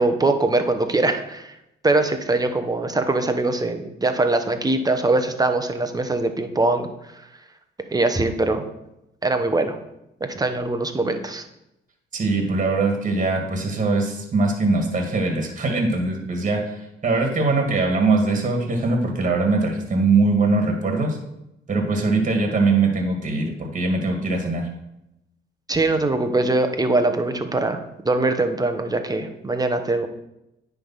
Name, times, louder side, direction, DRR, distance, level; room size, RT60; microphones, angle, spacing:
voice 1, 0.0-1.6 1.8-6.9 7.9-8.6 9.2-9.8 10.2-11.4 25.7-30.1, right 2 dB, 20° right, 7 dB, 0.9 m, -22 dB
voice 2, 12.1-21.2 21.7-24.7, right 3 dB, 40° right, 3 dB, 1.8 m, -21 dB
9.9 x 3.5 x 5.6 m, 0.86 s
cardioid pair, 90°, 20 cm